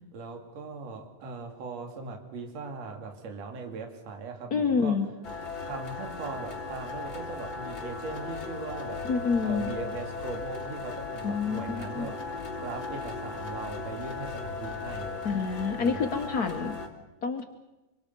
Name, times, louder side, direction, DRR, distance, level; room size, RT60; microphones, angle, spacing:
voice 1, 0.1-5.0 5.6-9.1 9.4-15.4 15.8-16.1, right 4 dB, 55° right, 4 dB, 3.4 m, -39 dB
voice 2, 4.5-5.1 9.0-9.7 11.2-12.1 15.2-16.8 17.2-17.4, left 5 dB, 75° left, 5 dB, 0.8 m, -28 dB
Granular Guitar, 5.2-16.9, left 4 dB, 40° left, 3.1 m, -37 dB
26.0 x 25.0 x 5.4 m, 1.1 s
omnidirectional pair, 3.6 m